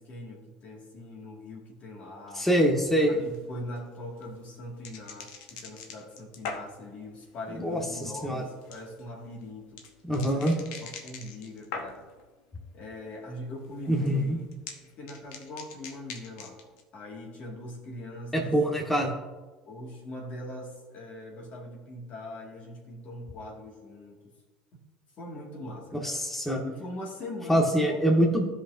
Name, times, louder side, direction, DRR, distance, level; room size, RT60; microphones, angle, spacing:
voice 1, 0.0-2.5 3.1-9.8 10.1-12.1 12.7-14.5 14.8-16.6 16.9-18.5 19.6-24.3 25.2-26.2 26.6-28.0 28.2-28.3, left 1 dB, 50° left, -1 dB, 2.1 m, -42 dB
voice 2, 2.3-3.1 7.5-8.5 10.0-10.5 13.9-14.4 18.3-19.1 25.9-26.6 27.5-28.5, equal, 10° left, 0 dB, 1.7 m, -25 dB
sound 1, 3.0-12.3 12.6-13.2 13.4-16.8, left 5 dB, 70° left, 1.0 m, -44 dB
15.5 x 5.4 x 2.7 m, 1.2 s
hypercardioid pair, 70°, 3 cm